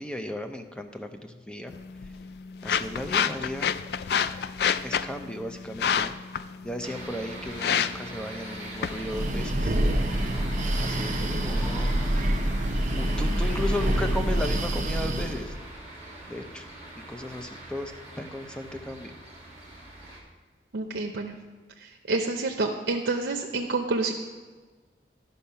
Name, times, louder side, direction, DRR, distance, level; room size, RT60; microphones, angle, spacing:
voice 1, 0.0-1.7 2.6-3.7 4.8-6.1 6.6-9.8 10.8-11.9 12.9-15.5 16.3-16.6 17.1-19.2, left 1 dB, 5° left, 6 dB, 0.5 m, -35 dB
sound 1, 1.7-11.7, left 7 dB, 65° left, 0.3 m, -31 dB
sound 2, 6.8-20.2, right 1 dB, 30° left, 2.1 m, -41 dB
Breathing, 8.9-15.5, right 1 dB, 45° right, 0.6 m, -26 dB
voice 2, 20.7-21.3 22.1-24.1, right 3 dB, 90° right, 3 dB, 0.6 m, -28 dB
12.0 x 5.5 x 5.6 m, 1.4 s
head